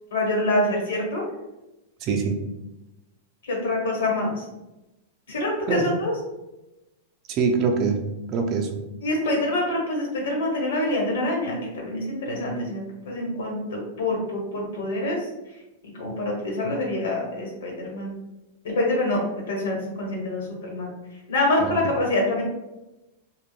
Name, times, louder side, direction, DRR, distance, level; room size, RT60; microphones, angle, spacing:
voice 1, 0.1-1.3 3.4-4.5 5.3-6.1 9.0-15.2 15.9-18.1 18.6-20.9 21.3-22.4, left 1 dB, 85° left, -1 dB, 1.0 m, -26 dB
voice 2, 2.0-2.4 5.7-5.9 7.3-8.8 21.6-21.7, right 4 dB, 35° right, 3 dB, 0.4 m, -24 dB
2.2 x 2.1 x 3.2 m, 0.98 s
supercardioid pair, 145°, 0 cm